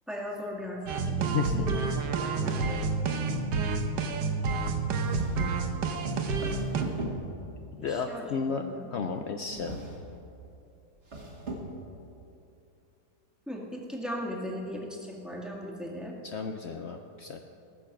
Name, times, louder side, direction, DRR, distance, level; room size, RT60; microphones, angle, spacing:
voice 1, 0.1-1.8 7.8-8.9 13.5-16.1, equal, ahead, -2 dB, 1.7 m, -38 dB
sound 1, 0.9-6.8, right 4 dB, 80° right, 1.6 m, -29 dB
sound 2, 5.0-5.6 6.3-7.7 9.5-10.3 11.0-11.9, right 1 dB, 40° right, 1.9 m, -39 dB
voice 2, 7.7-8.6 8.9-9.8 16.2-17.4, left 6 dB, 70° left, 5 dB, 0.6 m, -33 dB
19.5 x 6.9 x 6.0 m, 2.7 s
omnidirectional pair, 1.8 m